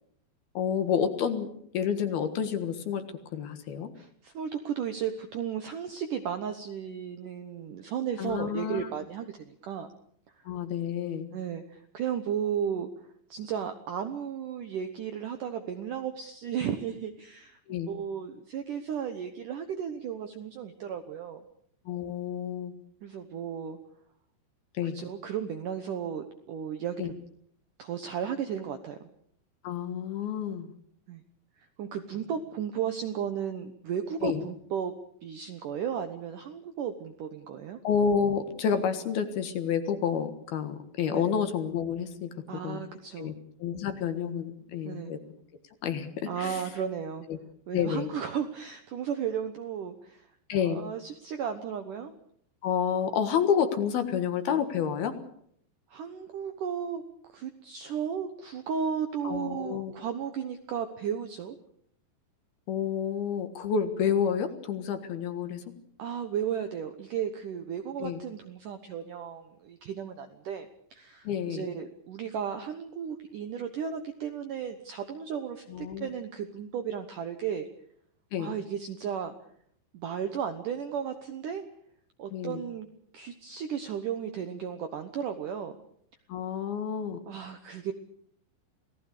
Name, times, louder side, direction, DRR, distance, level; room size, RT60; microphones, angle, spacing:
voice 1, 0.5-1.5 1.7-3.0 3.3-3.9 8.2-8.9 10.4-11.3 17.7-17.9 21.9-22.7 24.7-25.0 27.0-27.1 29.6-30.7 34.2-34.4 37.8-42.3 42.6-42.8 43.2-43.3 43.6-45.2 45.8-46.6 47.3-47.4 47.7-48.1 50.5-50.8 52.6-55.2 59.2-59.9 62.7-65.6 68.0-68.2 71.2-71.7 75.7-76.1 78.3-78.5 82.3-82.6 86.3-87.2, left 7 dB, 65° left, 8 dB, 3.1 m, -29 dB
voice 2, 4.0-9.9 11.3-12.9 13.3-17.6 17.9-21.4 23.0-23.8 24.8-27.1 27.8-29.0 31.1-31.2 31.8-34.9 35.2-37.8 41.1-41.3 42.5-43.3 44.9-45.1 46.3-47.3 47.7-50.3 50.6-52.1 55.9-57.0 57.3-61.6 66.0-77.7 78.4-79.4 79.9-81.6 82.2-82.9 83.1-85.8 87.3-87.9, right 8 dB, 70° right, 8 dB, 2.0 m, -34 dB
28.5 x 18.0 x 6.7 m, 0.67 s
omnidirectional pair, 5.3 m